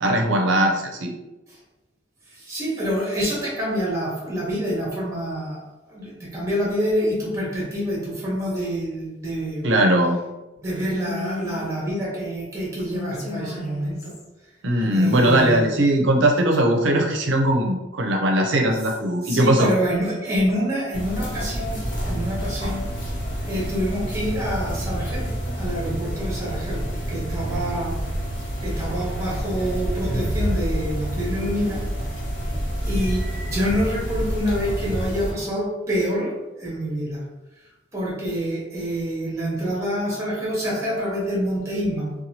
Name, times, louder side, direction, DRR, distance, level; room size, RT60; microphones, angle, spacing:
voice 1, 0.0-1.1 9.6-10.2 14.6-19.7, right 1 dB, 70° right, 2 dB, 0.5 m, -19 dB
voice 2, 2.3-5.6 5.9-9.7 10.6-14.1 14.9-15.7 19.2-22.8 23.5-27.9 28.6-31.8 32.8-36.3 36.6-37.2 37.9-42.1, equal, 15° right, -5 dB, 1.0 m, -27 dB
Female speech woman speaking, 11.0-11.7 12.8-14.3 14.8-15.7, left 3 dB, 35° left, 0.5 m, -36 dB
sound 1, 20.9-35.3, equal, 65° left, 1.0 m, -28 dB
2.8 x 2.2 x 2.8 m, 1.0 s
head